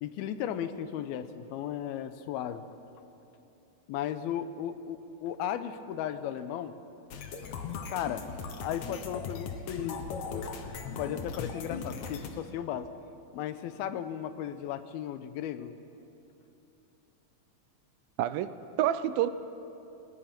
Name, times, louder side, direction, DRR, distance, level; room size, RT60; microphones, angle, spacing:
voice 1, 0.0-2.7 3.9-6.8 7.9-8.3 8.6-10.5 11.0-12.9 13.3-15.7, left 10 dB, 85° left, 11 dB, 2.7 m, -35 dB
sound 1, 7.1-12.3, left 5 dB, 60° left, 2.3 m, -38 dB
voice 2, 18.2-19.3, right 12 dB, 80° right, 13 dB, 2.4 m, -28 dB
27.5 x 19.0 x 6.0 m, 2.9 s
omnidirectional pair, 4.3 m